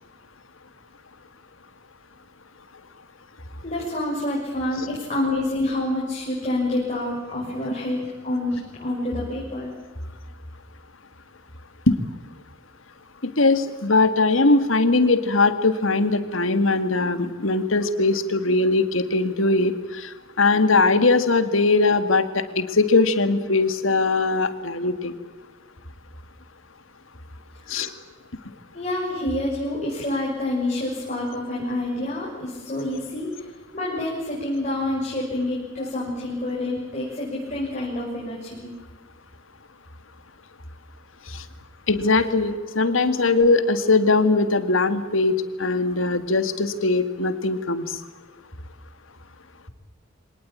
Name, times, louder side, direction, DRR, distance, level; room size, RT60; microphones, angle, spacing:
voice 1, 3.6-9.7 27.6-28.0 28.7-38.7, left 1 dB, 35° left, -5 dB, 6.9 m, -28 dB
voice 2, 13.2-25.1 27.7-27.9 41.3-41.4 41.9-48.0, left 3 dB, 80° left, 10 dB, 2.1 m, -20 dB
25.0 x 19.0 x 8.8 m, 1.3 s
head